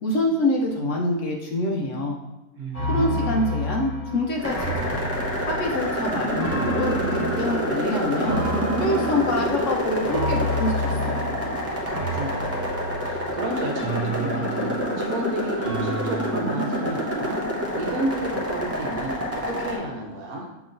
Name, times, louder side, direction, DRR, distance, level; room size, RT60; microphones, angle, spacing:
voice 1, 0.0-2.2 2.9-5.0 5.4-8.4 8.8-11.3, left 1 dB, 65° left, 0 dB, 0.9 m, -26 dB
voice 2, 2.6-3.4 11.9-17.4 17.7-20.5, right 1 dB, 75° right, -1 dB, 1.2 m, -31 dB
sound 1, 2.7-16.3, equal, 25° left, 1.1 m, -31 dB
sound 2, 4.4-19.8, equal, 15° right, 0.5 m, -27 dB
6.9 x 3.0 x 2.5 m, 1.0 s
omnidirectional pair, 1.6 m